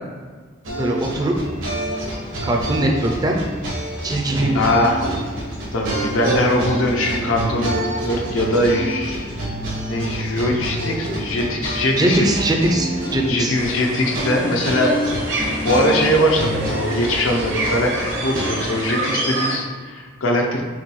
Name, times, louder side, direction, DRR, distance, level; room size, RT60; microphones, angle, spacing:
sound 1, 0.6-18.8, right 1 dB, 85° right, 1.3 m, -27 dB
voice 1, 0.8-1.3 2.4-3.4 4.0-4.9 10.4-10.6 12.0-13.6, right 1 dB, 20° right, 1 dB, 0.4 m, -21 dB
voice 2, 4.5-5.0 5.7-7.7 8.0-9.3 9.9-12.3 13.3-15.0 15.6-17.9 18.2-20.6, left 1 dB, 85° left, 1 dB, 0.6 m, -21 dB
sound 2, 13.5-19.5, right 1 dB, 70° right, 0.9 m, -27 dB
5.9 x 2.2 x 3.1 m, 1.5 s
head